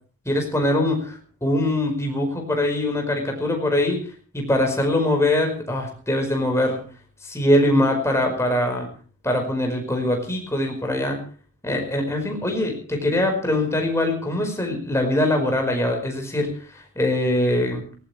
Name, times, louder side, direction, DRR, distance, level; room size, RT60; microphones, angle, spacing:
voice 1, 0.2-1.0 1.4-4.0 4.3-6.8 7.2-8.9 9.2-11.2 11.6-17.8, left 1 dB, 10° left, 2 dB, 5.0 m, -22 dB
18.5 x 18.5 x 3.3 m, 0.40 s
head